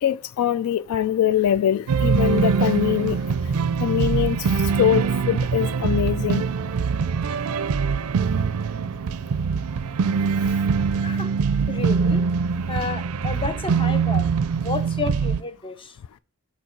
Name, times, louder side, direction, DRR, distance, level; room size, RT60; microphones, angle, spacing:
voice 1, 0.0-3.5 3.8-6.4, left 10 dB, 80° left, 0.3 m, -23 dB
sound 1, 1.9-15.4, right 5 dB, 85° right, 0.4 m, -23 dB
voice 2, 11.7-12.3 12.7-14.3 14.6-16.0, left 3 dB, 25° left, 0.7 m, -31 dB
7.1 x 4.4 x 4.5 m
head